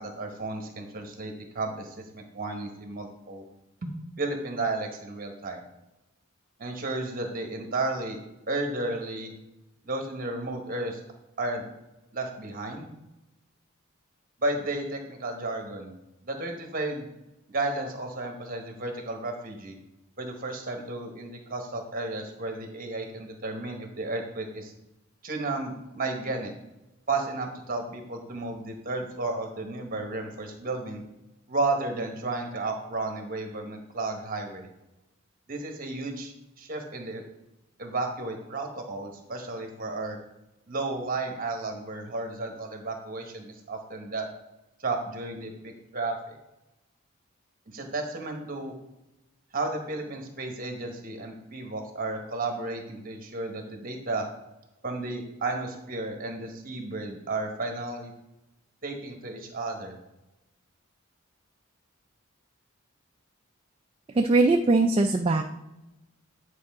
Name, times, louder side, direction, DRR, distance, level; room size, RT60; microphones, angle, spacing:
voice 1, 0.0-3.4 4.2-5.6 6.6-8.2 8.5-9.3 9.8-11.0 11.4-11.6 12.1-12.9 14.4-15.9 16.2-17.1 17.5-19.7 20.2-24.7 25.2-26.5 27.1-31.0 31.5-34.7 35.5-36.3 36.6-37.2 37.8-40.2 40.7-44.3 44.8-46.4 47.7-48.7 49.5-54.3 54.8-58.1 58.8-60.0, right 2 dB, 40° right, 4 dB, 1.2 m, -33 dB
voice 2, 64.2-65.4, right 2 dB, 25° right, 4 dB, 0.3 m, -21 dB
9.7 x 4.8 x 3.6 m, 0.97 s
head